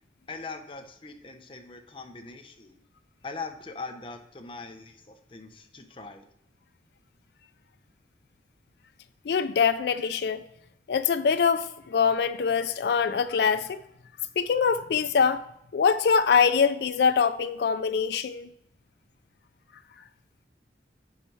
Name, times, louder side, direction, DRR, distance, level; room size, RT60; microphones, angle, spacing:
voice 1, 0.3-2.8 3.2-6.3, left 4 dB, 30° left, 0.7 m, -41 dB
voice 2, 9.3-10.4 10.9-13.8 14.4-15.4 15.7-18.5, left 6 dB, 70° left, 0.4 m, -24 dB
9.9 x 4.2 x 4.6 m
head